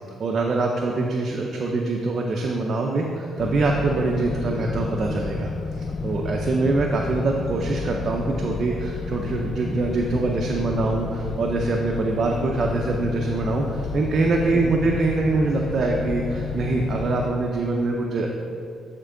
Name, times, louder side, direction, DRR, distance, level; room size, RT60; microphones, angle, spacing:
voice 1, 0.2-18.3, right 3 dB, 50° right, 0 dB, 0.6 m, -24 dB
sound 1, 3.4-17.3, left 5 dB, 55° left, 0.4 m, -31 dB
10.0 x 4.5 x 3.8 m, 2.4 s
cardioid pair, 90°, 0 cm